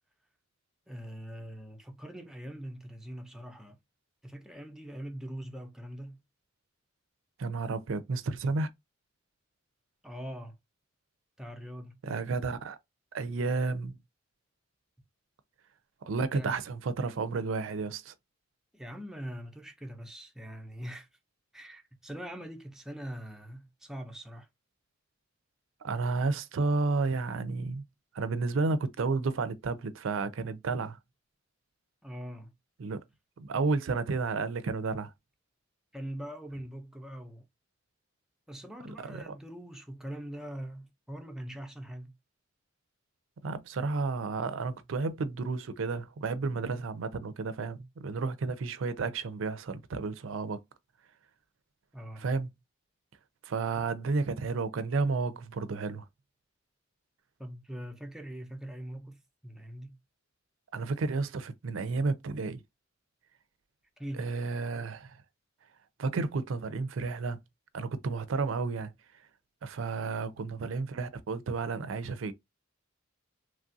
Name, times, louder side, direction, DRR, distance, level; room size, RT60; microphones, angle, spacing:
voice 1, 0.9-3.8 4.2-6.2 10.0-10.6 11.4-12.0 16.3-16.5 18.7-21.1 21.5-24.5 32.0-32.5 35.9-37.4 38.5-42.1 51.9-52.2 57.4-60.0 64.0-64.3 70.2-70.5, equal, 5° right, 0.5 m, -42 dB
voice 2, 7.4-8.7 12.0-12.8 13.1-14.0 16.0-18.1 25.8-27.8 28.1-31.0 32.8-33.0 33.4-35.1 39.1-39.3 43.4-50.6 52.2-52.5 53.4-56.0 60.7-62.6 64.2-65.2 66.0-67.4 67.7-68.9 69.6-72.3, right 4 dB, 75° right, 0.4 m, -32 dB
3.2 x 2.3 x 2.6 m
head